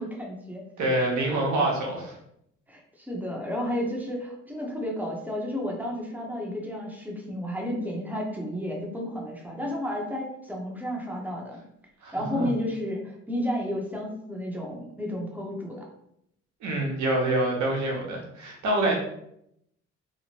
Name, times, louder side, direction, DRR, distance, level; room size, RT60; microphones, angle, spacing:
voice 1, 0.0-0.6 2.7-11.6 12.1-15.8, equal, 5° right, -1 dB, 0.7 m, -32 dB
voice 2, 0.8-2.1 12.0-12.5 16.6-18.9, right 1 dB, 70° right, -1 dB, 0.9 m, -26 dB
2.9 x 2.1 x 2.8 m, 0.75 s
cardioid pair, 90°, 30 cm